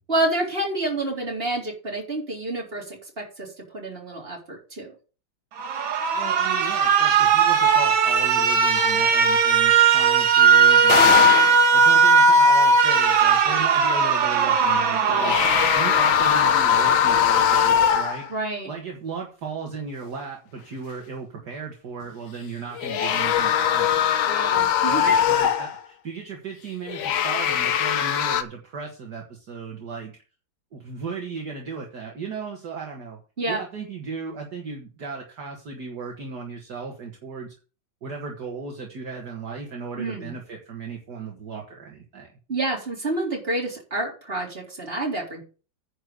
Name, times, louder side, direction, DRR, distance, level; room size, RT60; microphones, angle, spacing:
voice 1, 0.1-3.5 3.7-4.9 18.3-18.7 24.3-25.0 33.4-33.6 40.0-40.3 42.5-45.4, right 2 dB, 30° right, -2 dB, 4.0 m, -28 dB
Alarm, 5.6-16.6, right 4 dB, 85° right, 2.0 m, -18 dB
voice 2, 6.1-11.3 11.7-15.4 15.8-18.4 18.7-24.0 24.9-30.1 30.7-33.2 33.5-37.5 38.0-42.3, right 5 dB, 55° right, 1 dB, 2.1 m, -36 dB
sound 1, 8.8-9.0 10.9-11.7 15.0-18.3 22.7-25.8 26.9-28.4, left 9 dB, 90° left, 1.7 m, -21 dB
10.0 x 5.0 x 8.0 m, 0.36 s
omnidirectional pair, 2.1 m